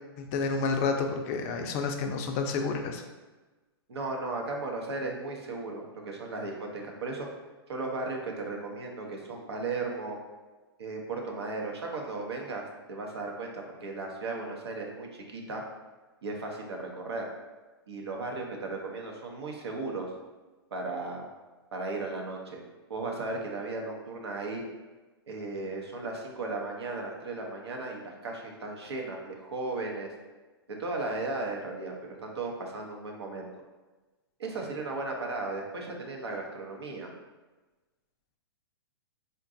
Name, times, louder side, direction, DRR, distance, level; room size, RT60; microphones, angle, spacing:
voice 1, 0.2-3.0, left 4 dB, 35° left, 4 dB, 0.4 m, -30 dB
voice 2, 3.9-7.3 7.7-10.2 10.8-15.6 16.2-17.2 17.9-20.1 20.7-21.2 21.7-22.6 22.9-24.6 25.3-30.1 30.8-33.5 34.4-37.1, right 3 dB, 80° right, 0 dB, 0.7 m, -36 dB
3.7 x 2.2 x 2.6 m, 1.2 s
hypercardioid pair, 125°, 14 cm